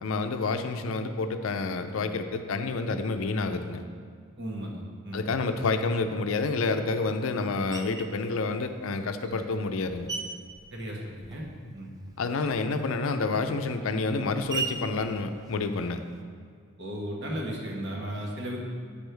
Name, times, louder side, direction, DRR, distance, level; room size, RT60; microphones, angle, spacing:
voice 1, 0.0-3.8 5.1-10.1 12.2-16.0, left 3 dB, 80° left, 8 dB, 0.5 m, -29 dB
voice 2, 4.4-5.2 10.7-11.5 11.7-11.9 16.8-18.6, equal, 55° right, -1 dB, 1.2 m, -35 dB
Screech, 7.7-8.2 8.9-11.6 11.9-16.2, right 4 dB, 20° right, 0.4 m, -40 dB
8.4 x 6.2 x 3.4 m, 2.1 s
head